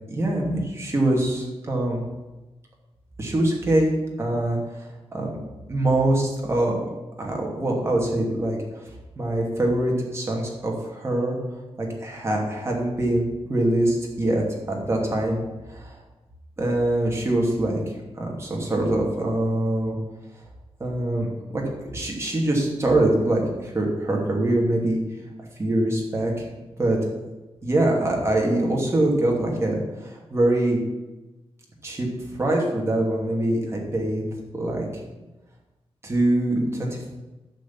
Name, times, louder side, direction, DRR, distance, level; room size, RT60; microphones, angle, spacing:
voice 1, 0.1-2.0 3.2-3.9 4.2-4.9 5.1-5.4 5.7-6.8 7.2-8.8 9.2-11.4 11.8-15.4 15.7-16.0 16.6-17.8 18.2-20.0 20.8-21.6 21.9-25.0 25.6-26.5 26.8-27.0 27.6-30.8 31.8-34.2 34.5-35.0 36.0-37.1, right 1 dB, 25° right, -1 dB, 2.6 m, -24 dB
11.5 x 5.2 x 8.6 m, 1.1 s
wide cardioid pair, 175°, 11 cm